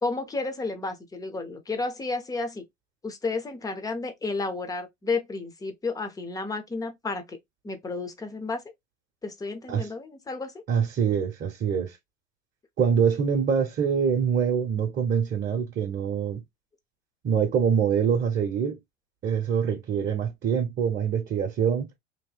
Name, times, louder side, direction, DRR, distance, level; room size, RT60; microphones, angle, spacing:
voice 1, 0.0-2.6 3.0-7.4 7.6-8.6 9.2-10.5, left 3 dB, 10° left, 0.6 m, -32 dB
voice 2, 10.7-12.0 12.8-16.4 17.2-18.8 19.2-21.9, right 7 dB, 25° right, 0.8 m, -25 dB
2.9 x 2.6 x 3.8 m
supercardioid pair, 120°, 41 cm